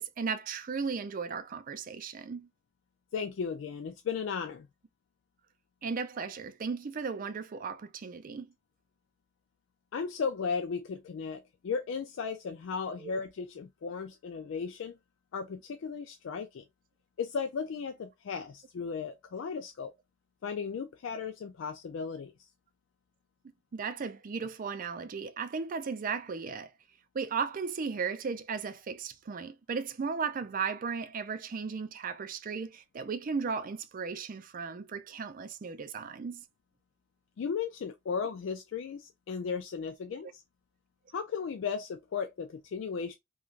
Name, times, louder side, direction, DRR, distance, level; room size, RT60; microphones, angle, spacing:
voice 1, 0.0-2.5 5.8-8.5 13.0-13.1 23.7-26.7 27.1-36.4, right 5 dB, 45° right, 0.4 m, -36 dB
voice 2, 3.1-4.7 9.9-15.0 15.3-16.6 17.2-19.9 20.4-22.3 37.4-40.4 41.1-43.1, left 5 dB, 70° left, 0.3 m, -35 dB
3.1 x 2.3 x 2.4 m
head